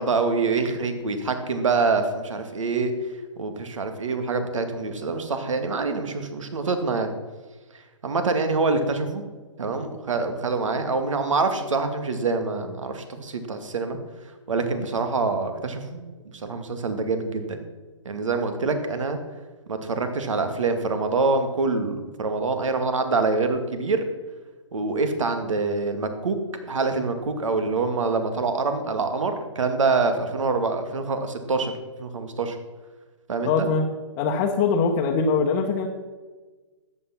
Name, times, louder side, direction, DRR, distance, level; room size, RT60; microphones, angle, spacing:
voice 1, 0.0-2.9 3.4-7.1 8.0-9.2 9.6-14.0 14.5-16.0 16.3-17.6 18.1-19.2 19.7-24.0 24.7-26.4 26.7-31.7 32.0-32.6 33.3-33.7, right 3 dB, 75° right, 7 dB, 2.1 m, -25 dB
voice 2, 33.4-33.9 34.2-35.9, left 5 dB, 30° left, 0 dB, 1.1 m, -22 dB
13.5 x 8.7 x 5.9 m, 1.3 s
hypercardioid pair, 140°, 16 cm